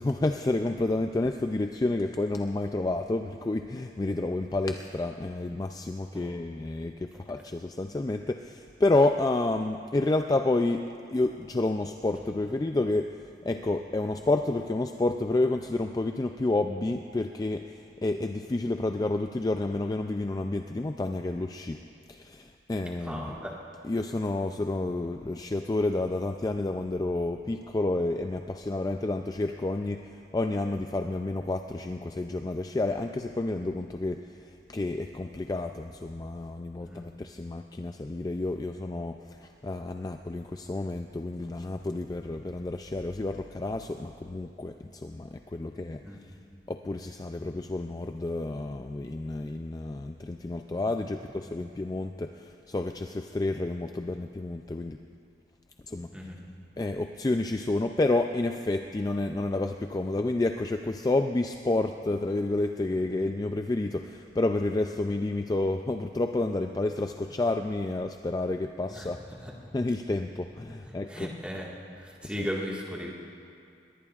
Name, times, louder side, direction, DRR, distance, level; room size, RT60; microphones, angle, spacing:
voice 1, 0.0-13.1 13.4-21.8 22.1-23.4 23.8-46.2 46.7-55.0 55.9-56.3 56.8-69.2 69.7-71.3 72.2-72.5, left 2 dB, 20° left, 6 dB, 0.3 m, -30 dB
voice 2, 23.0-23.6 36.8-37.1 46.0-46.4 51.5-51.6 56.1-56.4 68.9-69.1 69.4-69.5 70.8-71.7 72.0-73.1, equal, 5° right, -3 dB, 1.7 m, -37 dB
21.5 x 18.5 x 2.4 m, 2.4 s
head